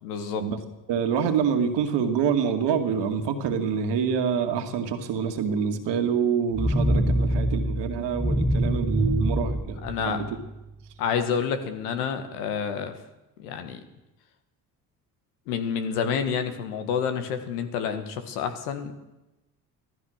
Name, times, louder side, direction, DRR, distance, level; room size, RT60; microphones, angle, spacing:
voice 1, 0.0-0.4 9.8-10.2 11.0-12.9 13.4-13.8 15.5-18.9, left 7 dB, 85° left, 8 dB, 1.7 m, -28 dB
voice 2, 0.9-9.8 10.1-10.3, right 7 dB, 65° right, 6 dB, 2.2 m, -26 dB
sound 1, 6.5-10.6, equal, ahead, 1.0 m, -25 dB
15.0 x 14.0 x 6.5 m, 1.0 s
hypercardioid pair, 60°, 45 cm